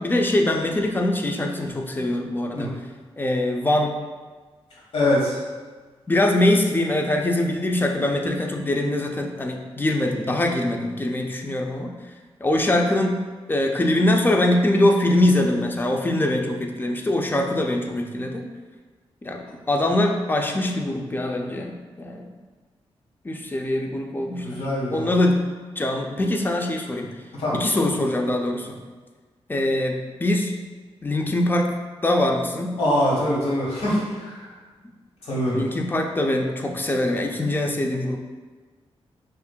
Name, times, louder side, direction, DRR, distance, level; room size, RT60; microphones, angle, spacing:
voice 1, 0.0-2.7 3.2-3.9 6.1-11.9 12.4-13.2 13.5-18.5 19.2-22.3 23.2-24.6 24.9-25.4 25.8-27.1 27.5-28.8 29.5-30.5 31.0-31.7 32.0-32.8 35.5-38.2, left 1 dB, 20° left, 2 dB, 0.4 m, -23 dB
voice 2, 4.9-5.4 24.4-25.1 27.3-27.6 32.8-34.5 35.3-35.6, left 1 dB, 75° left, -6 dB, 1.3 m, -23 dB
5.4 x 2.5 x 2.2 m, 1.4 s
wide cardioid pair, 100°, 10 cm